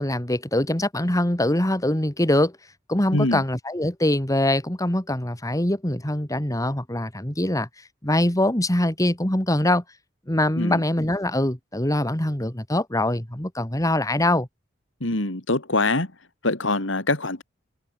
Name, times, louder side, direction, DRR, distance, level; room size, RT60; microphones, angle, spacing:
voice 1, 0.0-2.6 2.9-7.7 8.0-9.8 10.3-14.5, left 1 dB, 20° left, 2.3 m, -23 dB
voice 2, 3.1-3.4 10.6-10.8 15.0-16.1 16.4-17.4, left 2 dB, 80° left, 3.1 m, -24 dB
head